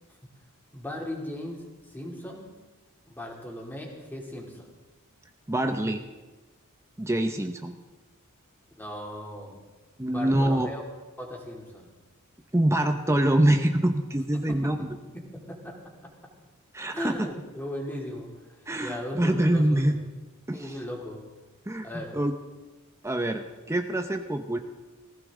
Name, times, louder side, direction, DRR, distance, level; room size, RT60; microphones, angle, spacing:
voice 1, 0.7-2.5 3.1-4.7 8.8-9.6 10.1-10.8 11.2-11.9 14.3-14.9 15.1-15.8 16.9-20.0 20.5-21.3 21.8-22.2, left 1 dB, 10° left, -1 dB, 2.9 m, -38 dB
voice 2, 5.5-6.0 7.0-7.7 10.0-10.7 12.5-14.8 16.7-17.3 18.7-20.0 20.5-20.7 21.7-21.9 22.1-22.3 23.0-24.6, right 1 dB, 15° right, 6 dB, 0.8 m, -25 dB
18.5 x 15.5 x 3.7 m, 1.2 s
head